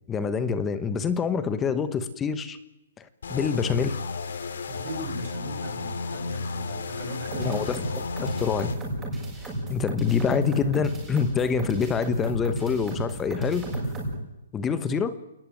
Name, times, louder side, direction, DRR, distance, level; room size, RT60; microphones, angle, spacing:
voice 1, 0.1-2.6 3.0-3.9 7.4-7.8 8.2-8.7 9.7-13.7 14.5-15.1, left 6 dB, 10° left, 12 dB, 1.3 m, -26 dB
sound 1, 3.2-8.8, left 4 dB, 70° left, 3.3 m, -33 dB
voice 2, 4.7-7.6, right 1 dB, 35° right, 5 dB, 7.6 m, -37 dB
sound 2, 7.3-14.1, right 1 dB, 10° right, 7.4 m, -33 dB
29.0 x 20.0 x 9.3 m, 0.94 s
hypercardioid pair, 165°, 0 cm